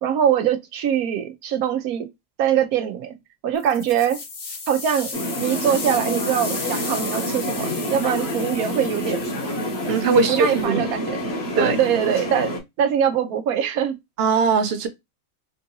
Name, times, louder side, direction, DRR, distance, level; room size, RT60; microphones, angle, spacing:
voice 1, 0.0-2.1 2.4-3.1 3.4-4.2 4.7-9.3 10.1-11.3 11.5-12.5 12.8-13.9, right 9 dB, 85° right, 1.1 m, -23 dB
sound 1, 3.5-10.6, left 4 dB, 65° left, 1.5 m, -35 dB
sound 2, 5.1-12.6, equal, 50° left, 1.2 m, -28 dB
voice 2, 9.9-10.8 11.6-11.8 14.2-14.9, right 5 dB, 55° right, 0.8 m, -20 dB
3.6 x 2.7 x 2.6 m
omnidirectional pair, 1.5 m